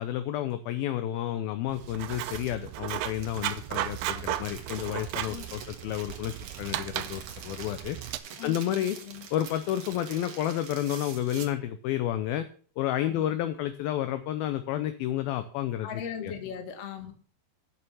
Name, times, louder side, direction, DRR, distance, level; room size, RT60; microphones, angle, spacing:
voice 1, 0.0-8.0 8.4-9.0 9.3-12.5 12.8-16.3, left 12 dB, 80° left, 10 dB, 2.2 m, -31 dB
Writing, 1.7-8.2, right 14 dB, 80° right, 2.5 m, -35 dB
sound 1, 1.9-11.5, right 7 dB, 60° right, 2.3 m, -45 dB
voice 2, 8.4-9.3 13.0-13.5 15.8-17.1, left 7 dB, 50° left, 5 dB, 2.0 m, -39 dB
9.0 x 6.7 x 6.9 m, 0.43 s
omnidirectional pair, 4.9 m